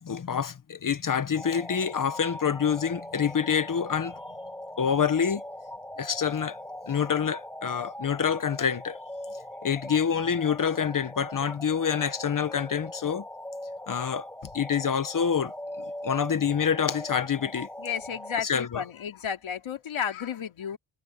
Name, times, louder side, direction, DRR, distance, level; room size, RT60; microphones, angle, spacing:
voice 1, 0.0-4.2 4.8-5.4 6.0-6.6 6.9-9.0 9.6-13.3 13.9-14.3 14.5-15.5 15.8-17.7 18.4-18.8, left 7 dB, 40° left, 1.1 m, -27 dB
sound 1, 1.3-18.4, left 1 dB, 5° left, 2.3 m, -41 dB
voice 2, 17.8-20.8, left 8 dB, 70° left, 3.0 m, -33 dB
wide cardioid pair, 165°, 49 cm